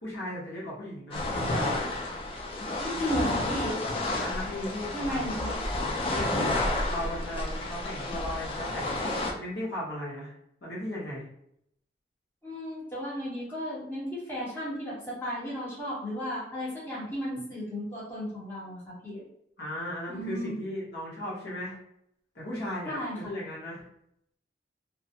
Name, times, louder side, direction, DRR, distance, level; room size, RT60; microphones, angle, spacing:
voice 1, 0.0-1.8 4.2-5.4 6.1-10.3 10.6-11.3 19.6-21.8 22.3-23.8, left 1 dB, 65° left, -6 dB, 0.9 m, -36 dB
sound 1, 1.1-9.3, left 2 dB, 30° left, 0.3 m, -31 dB
voice 2, 2.8-3.7 4.9-5.5 12.4-19.2 20.1-20.5 22.9-23.2, equal, 10° left, -9 dB, 0.9 m, -34 dB
2.3 x 2.0 x 2.7 m, 0.73 s
head